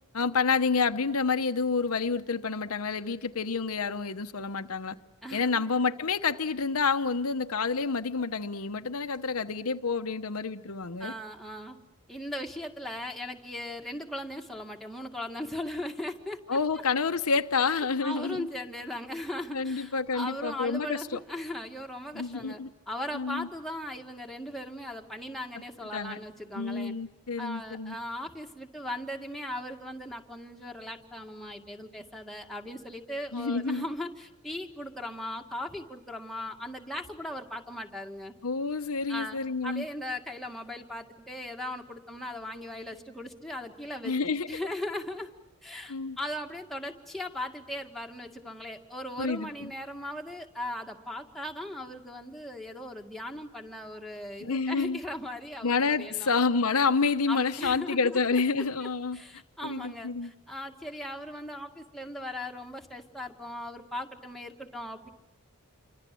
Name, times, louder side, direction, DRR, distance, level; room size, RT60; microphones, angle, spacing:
voice 1, 0.1-5.0 5.3-11.1 16.5-18.5 19.5-21.2 22.1-22.7 23.1-23.5 25.9-26.2 26.5-28.0 33.3-33.9 38.4-39.8 44.0-44.5 45.9-46.2 49.2-49.7 54.4-55.0 55.6-59.2 59.6-60.3, left 4 dB, 90° left, 1.0 m, -28 dB
voice 2, 5.2-5.6 11.0-11.8 12.1-16.6 17.7-22.6 22.9-26.9 27.4-38.3 39.1-45.3 45.6-56.3 57.3-58.4 59.1-65.1, left 1 dB, ahead, 2.0 m, -38 dB
28.0 x 24.5 x 7.7 m
head